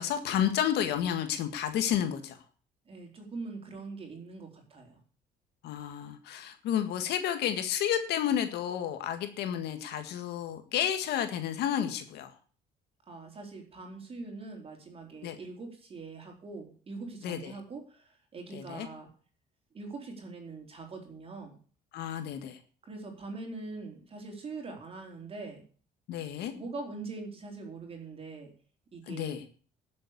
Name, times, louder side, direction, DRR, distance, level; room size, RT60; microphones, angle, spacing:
voice 1, 0.0-2.4 5.6-12.3 15.2-15.4 17.2-17.6 18.5-18.9 21.9-22.6 26.1-26.5 29.1-29.4, left 10 dB, 80° left, 8 dB, 1.8 m, -31 dB
voice 2, 2.9-5.0 13.1-19.1 19.7-21.5 22.8-25.6 26.5-28.5 28.9-29.3, right 3 dB, 35° right, 2 dB, 4.3 m, -43 dB
11.5 x 7.6 x 6.8 m, 0.41 s
cardioid pair, 110°, 17 cm